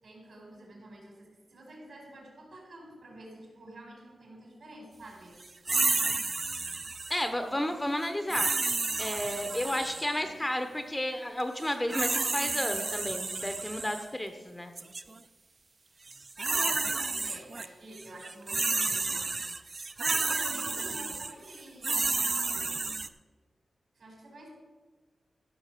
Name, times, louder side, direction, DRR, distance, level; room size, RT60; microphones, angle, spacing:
voice 1, 0.0-5.4 9.0-10.4 16.5-19.6 20.0-22.7 23.9-24.5, right 1 dB, 65° right, -1 dB, 4.5 m, -49 dB
sound 1, 5.7-7.3 8.3-10.2 11.6-14.0 14.8-15.0 16.1-17.7 18.0-23.1, right 3 dB, 35° right, 0.4 m, -31 dB
voice 2, 7.1-8.5 9.0-14.7, left 1 dB, 10° left, 7 dB, 0.7 m, -32 dB
14.0 x 6.3 x 6.6 m, 1.4 s
wide cardioid pair, 160°, 0 cm